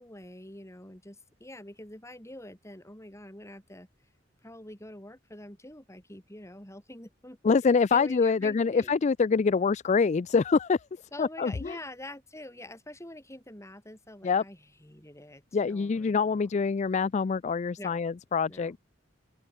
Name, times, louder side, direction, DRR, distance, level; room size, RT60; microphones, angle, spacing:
voice 1, 0.0-3.9 4.4-7.4 7.9-8.9 11.1-16.5 17.8-18.0 18.5-18.8, left 1 dB, 15° left, 7.2 m, -46 dB
voice 2, 7.4-10.8 11.2-11.8 14.2-14.4 15.5-18.8, left 5 dB, 40° left, 0.4 m, -25 dB
open air
head